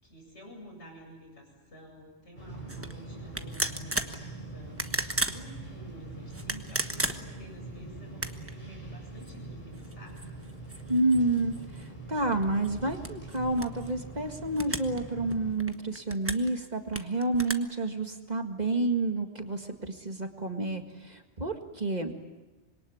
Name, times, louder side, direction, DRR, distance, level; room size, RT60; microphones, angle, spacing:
voice 1, 0.0-10.3, equal, 70° left, 1 dB, 8.5 m, -51 dB
sound 1, 2.3-15.5, right 2 dB, 40° left, 5.2 m, -43 dB
sound 2, 2.7-2.9 3.3-4.2 4.7-5.4 6.3-7.5 8.1-8.5 9.2-9.3 9.7-11.9 12.3-13.9 14.5-15.0 15.3-16.5 16.9-17.5, right 1 dB, 10° right, 1.2 m, -34 dB
voice 2, 10.9-22.3, right 2 dB, 35° right, 5 dB, 2.0 m, -29 dB
26.0 x 22.5 x 9.5 m, 1.2 s
omnidirectional pair, 1.2 m